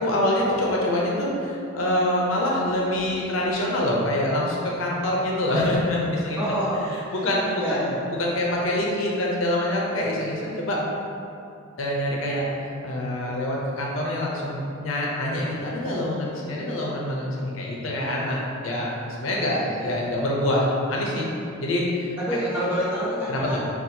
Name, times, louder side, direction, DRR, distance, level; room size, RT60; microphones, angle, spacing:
voice 1, 0.0-6.4 7.2-7.8 8.2-10.8 11.8-21.3 21.6-22.2 23.3-23.6, left 1 dB, 70° left, -3 dB, 0.5 m, -25 dB
voice 2, 6.4-8.0 19.4-19.8 22.2-23.6, equal, 10° right, -12 dB, 1.1 m, -28 dB
4.0 x 2.3 x 2.7 m, 2.6 s
head